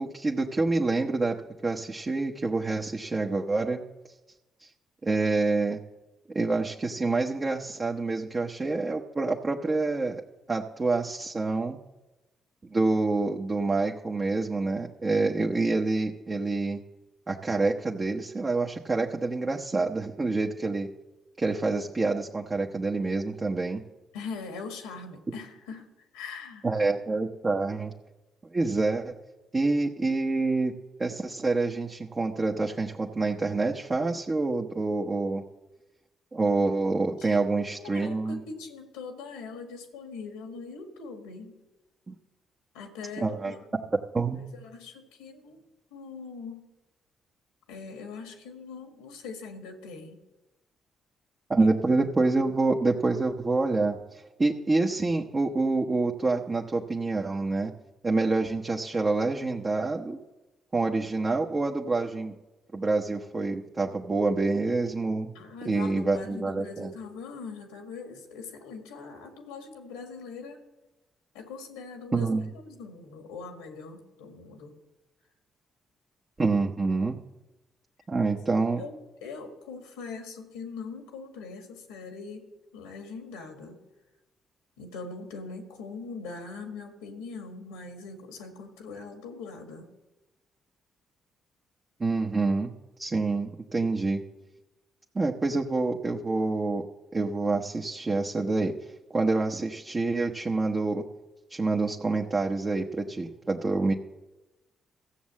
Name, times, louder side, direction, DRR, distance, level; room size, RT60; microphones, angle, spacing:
voice 1, 0.0-1.4 1.6-3.8 4.6-4.7 5.0-5.8 6.3-10.2 10.5-11.8 12.7-16.8 17.3-20.9 21.4-23.8 25.3-25.4 26.6-27.9 28.4-29.1 29.5-30.7 31.0-35.4 36.3-38.4 42.1-42.2 43.2-43.5 44.1-44.4 51.5-57.7 58.0-60.2 60.7-62.3 62.7-65.4 65.6-66.9 72.1-72.4 76.4-77.2 78.1-78.8 92.0-92.7 93.0-94.2 95.1-96.9 97.1-98.7 99.1-101.0 101.5-103.9, right 3 dB, 35° right, 1 dB, 1.0 m, -27 dB
voice 2, 24.1-25.9 26.1-26.7 37.2-37.4 37.7-41.6 42.7-43.6 44.3-45.6 45.9-46.7 47.7-50.2 51.6-51.7 65.3-70.6 71.3-74.7 78.2-82.5 82.7-83.8 84.8-89.9, left 4 dB, 85° left, 5 dB, 1.8 m, -41 dB
14.5 x 7.2 x 7.5 m, 1.1 s
hypercardioid pair, 45°, 0 cm